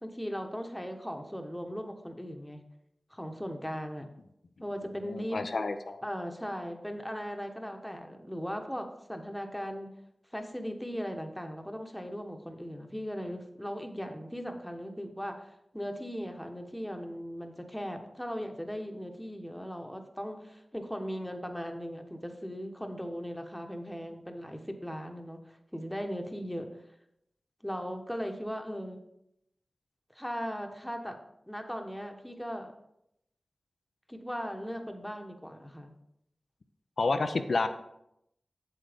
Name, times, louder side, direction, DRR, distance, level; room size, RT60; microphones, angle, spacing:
voice 1, 0.0-2.6 3.1-4.1 4.6-5.4 6.0-9.9 10.3-26.7 27.6-29.0 30.1-31.2 31.5-32.7 34.1-35.9, equal, 5° left, 4 dB, 1.1 m, -38 dB
voice 2, 5.0-6.0 37.0-37.7, left 3 dB, 75° left, 7 dB, 0.5 m, -29 dB
7.7 x 7.6 x 3.5 m, 0.80 s
wide cardioid pair, 55°, 0 cm